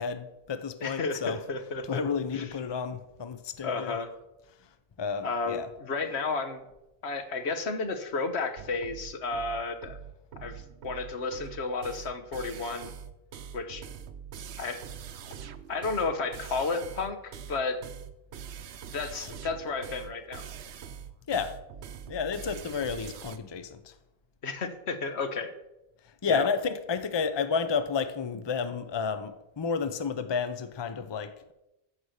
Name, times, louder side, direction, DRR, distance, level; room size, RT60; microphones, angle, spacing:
voice 1, 0.0-1.4 1.8-4.0 4.6-5.7 21.3-21.6 22.1-23.9 26.0-31.5, left 5 dB, 30° left, 11 dB, 0.6 m, -31 dB
voice 2, 0.8-2.0 2.3-2.4 3.6-4.1 5.2-6.6 7.0-10.0 10.4-12.9 13.5-13.8 14.6-14.8 15.7-17.8 18.9-20.4 24.4-25.5 26.3-26.5, left 4 dB, 80° left, 8 dB, 1.4 m, -32 dB
sound 1, 8.6-23.4, right 8 dB, 80° right, 1.0 m, -43 dB
13.5 x 4.9 x 6.5 m, 0.91 s
omnidirectional pair, 1.1 m